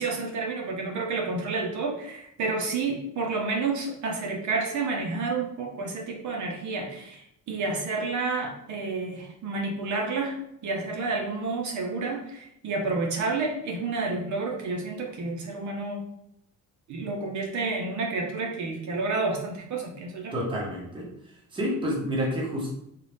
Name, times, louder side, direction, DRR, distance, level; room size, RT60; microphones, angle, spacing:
voice 1, 0.0-16.0 16.9-20.3, right 3 dB, 60° right, 1 dB, 0.6 m, -30 dB
voice 2, 20.3-21.1 21.5-22.7, equal, 15° right, -3 dB, 0.7 m, -29 dB
4.0 x 2.3 x 3.2 m, 0.77 s
cardioid pair, 180°, 33 cm